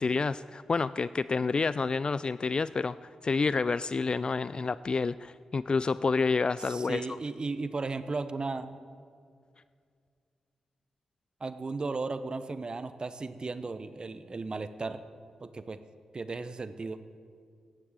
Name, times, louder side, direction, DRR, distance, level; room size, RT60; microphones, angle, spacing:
voice 1, 0.0-7.0, left 4 dB, 45° left, 16 dB, 0.3 m, -29 dB
voice 2, 6.7-8.8 11.4-15.0 15.4-15.8 16.1-17.0, right 3 dB, 45° right, 12 dB, 0.8 m, -35 dB
15.0 x 10.0 x 7.6 m, 2.2 s
supercardioid pair, 50°, 2 cm